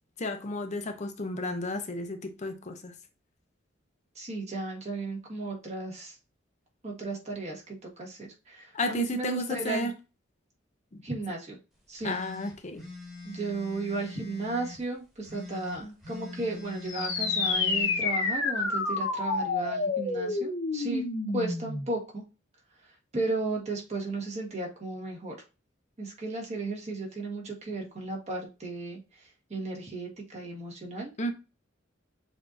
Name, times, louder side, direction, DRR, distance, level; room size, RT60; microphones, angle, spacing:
voice 1, 0.2-3.0 8.7-9.9 12.0-12.9 31.2-31.3, left 2 dB, 35° left, 0.6 m, -32 dB
voice 2, 4.1-6.2 6.8-9.9 11.0-11.6 11.9-12.1 13.2-21.0 21.3-22.2 22.8-25.3 26.0-31.1, right 2 dB, 35° right, 1.4 m, -35 dB
sound 1, 12.0-14.8 15.2-18.1, left 3 dB, ahead, 1.3 m, -43 dB
sound 2, 16.9-21.9, left 3 dB, 85° left, 1.1 m, -29 dB
6.8 x 2.7 x 2.5 m
head